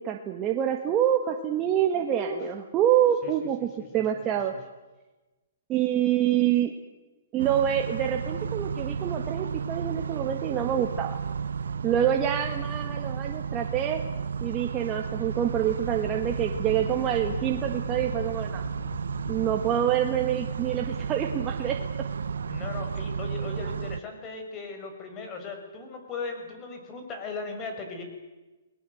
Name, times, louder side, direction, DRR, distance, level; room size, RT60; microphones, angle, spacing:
voice 1, 0.0-3.7 3.9-4.5 5.7-6.7 7.3-11.2 11.8-14.0 14.4-18.6 19.3-21.8, right 10 dB, 20° right, 3 dB, 1.7 m, -26 dB
voice 2, 1.9-2.5 3.2-3.3 3.8-4.0 22.4-28.0, left 3 dB, 20° left, 4 dB, 5.6 m, -37 dB
sound 1, 7.4-24.0, right 6 dB, 85° right, 0.9 m, -33 dB
Wind, 15.0-19.9, left 6 dB, 80° left, 2.6 m, -42 dB
29.5 x 20.5 x 8.0 m, 1.1 s
hypercardioid pair, 160°, 0 cm